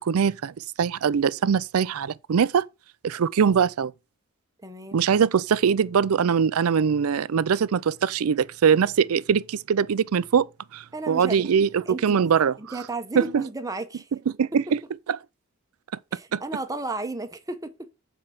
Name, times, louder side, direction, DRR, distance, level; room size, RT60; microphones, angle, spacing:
voice 1, 0.0-2.6 3.0-3.9 4.9-10.5 10.7-12.6 13.2-13.3 14.3-14.8 16.3-16.4, right 7 dB, 80° right, 0.4 m, -22 dB
voice 2, 4.6-5.0 10.9-11.4 11.9-12.2 12.6-14.1 14.7-14.8 16.1-17.9, right 2 dB, 15° right, 0.9 m, -33 dB
8.6 x 4.6 x 5.7 m
head